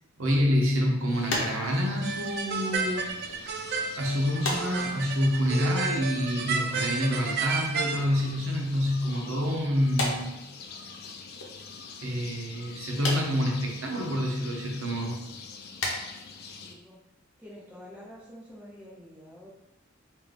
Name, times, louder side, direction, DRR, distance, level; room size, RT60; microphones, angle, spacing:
voice 1, 0.2-3.1 4.0-10.3 12.0-15.2, equal, 85° right, 0 dB, 0.8 m, -27 dB
voice 2, 0.7-1.0 16.6-17.0 17.4-19.5, equal, 5° right, -6 dB, 1.0 m, -48 dB
sound 1, 1.1-16.7, left 4 dB, 50° left, 0.4 m, -45 dB
sound 2, 1.3-3.0 3.3-3.6 4.4-5.4 5.7-6.8 7.1-7.5 8.4-9.0 9.9-11.1 11.4-11.5 13.0-13.8 14.4-14.5 15.0-15.3 15.7-16.1 16.4-16.6 16.8-17.1 17.7-17.8 18.2-18.3 18.5-18.6, left 2 dB, 70° left, 0.9 m, -35 dB
sound 3, 2.0-8.0, right 5 dB, 55° right, 0.4 m, -32 dB
3.7 x 2.6 x 3.6 m, 0.88 s
head